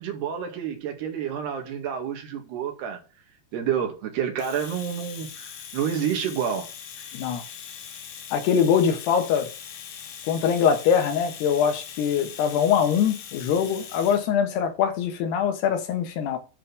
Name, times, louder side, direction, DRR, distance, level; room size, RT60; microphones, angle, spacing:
voice 1, 0.0-3.0 3.5-6.7 7.0-7.1, right 8 dB, 80° right, 4.0 m, -29 dB
Domestic sounds home sounds, 4.4-14.3, left 8 dB, 65° left, 2.8 m, -41 dB
voice 2, 7.1-7.4 8.3-9.5 10.3-16.4, left 7 dB, 85° left, 3.5 m, -23 dB
10.5 x 4.4 x 6.9 m
omnidirectional pair, 4.7 m